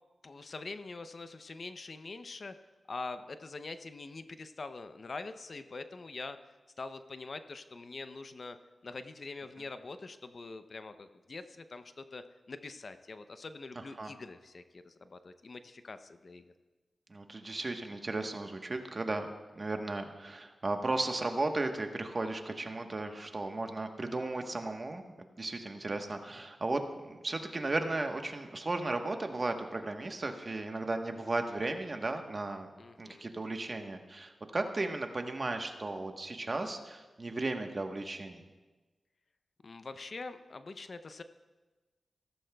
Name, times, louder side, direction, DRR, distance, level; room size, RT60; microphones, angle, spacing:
voice 1, 0.2-2.5 2.9-6.4 6.8-8.6 8.8-16.5 32.8-33.3 39.6-41.2, left 3 dB, 55° left, 10 dB, 0.6 m, -44 dB
voice 2, 17.1-19.3 19.5-25.0 25.4-32.7 33.0-38.4, right 2 dB, 40° right, 5 dB, 1.1 m, -35 dB
15.5 x 14.0 x 2.3 m, 1.2 s
cardioid pair, 60°, 0 cm